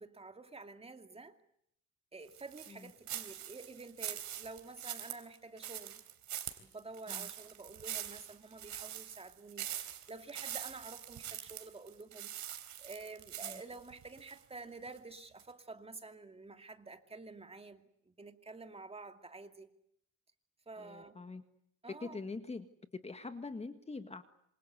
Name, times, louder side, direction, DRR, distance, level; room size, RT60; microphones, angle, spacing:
voice 1, 0.0-1.4 2.1-6.0 6.6-12.3 12.8-19.7 20.7-21.2 21.8-22.2, right 3 dB, 20° right, 2.5 m, -50 dB
sound 1, 2.3-14.4 14.9-15.0 15.4-15.5, right 11 dB, 70° right, 3.5 m, -43 dB
voice 2, 20.8-21.4 22.0-22.7 23.0-24.2, left 3 dB, 20° left, 1.8 m, -44 dB
27.0 x 26.5 x 8.2 m
cardioid pair, 125°, 30 cm